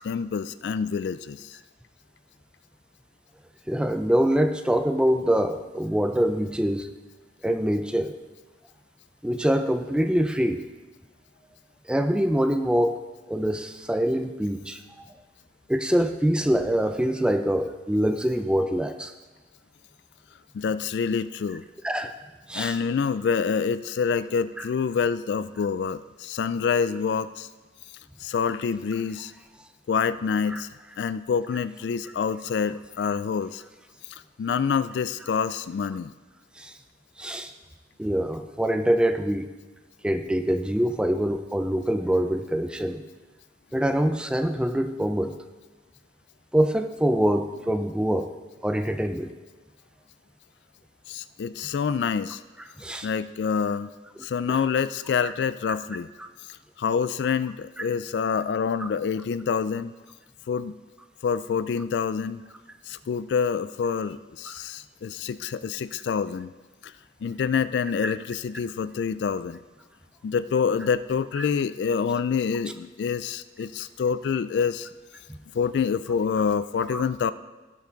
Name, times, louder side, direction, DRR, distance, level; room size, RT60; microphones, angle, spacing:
voice 1, 0.0-1.6 20.5-21.6 22.5-27.5 28.2-29.3 29.9-30.7 31.0-33.6 34.1-36.1 51.1-52.4 53.0-53.9 54.2-56.1 56.5-59.9 60.5-60.7 61.2-62.4 62.9-66.5 66.8-66.9 67.2-69.6 70.2-74.9 75.5-77.3, left 6 dB, 65° left, 15 dB, 0.3 m, -27 dB
voice 2, 3.7-6.9 7.4-8.1 9.2-10.6 11.9-12.9 13.3-14.8 15.7-19.1 21.8-22.1 22.5-22.8 30.5-30.6 36.6-36.7 37.2-37.5 38.0-39.5 40.0-43.0 43.7-45.3 46.5-48.3 48.6-49.3 52.8-53.1 54.5-54.6 68.0-68.1 76.9-77.0, equal, 5° right, 7 dB, 0.5 m, -24 dB
16.0 x 5.7 x 3.9 m, 1.2 s
head